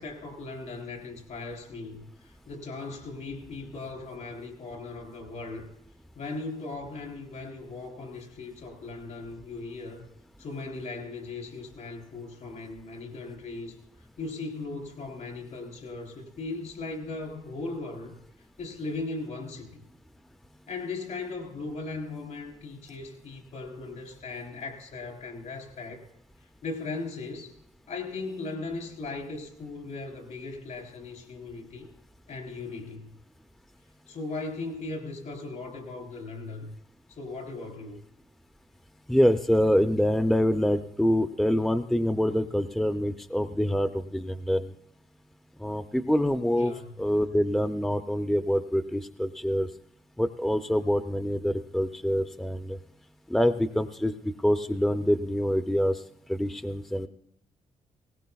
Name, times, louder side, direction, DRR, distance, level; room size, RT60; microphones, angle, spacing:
voice 1, 0.0-5.7 6.1-10.1 10.4-13.8 14.2-18.2 18.6-19.8 20.7-26.0 26.6-27.5 27.9-31.9 32.3-33.1 34.1-36.7 37.1-38.0 46.6-46.8, left 3 dB, 70° left, 2 dB, 3.5 m, -38 dB
voice 2, 39.1-44.7 45.6-46.7 47.0-49.7 50.2-52.8 53.3-54.1 54.4-56.0 56.3-57.1, equal, 5° left, 9 dB, 0.5 m, -25 dB
20.0 x 18.0 x 2.3 m, 0.76 s
cardioid pair, 100°, 13 cm